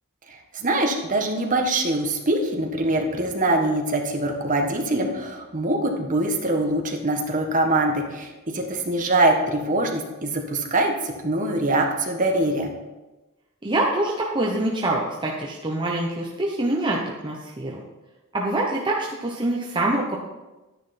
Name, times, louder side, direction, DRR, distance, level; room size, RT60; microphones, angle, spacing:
voice 1, 0.3-12.7, right 2 dB, 40° right, 2 dB, 1.5 m, -23 dB
voice 2, 13.6-17.8 18.3-20.2, right 1 dB, 20° right, -3 dB, 1.0 m, -25 dB
11.0 x 10.0 x 4.3 m, 1.1 s
head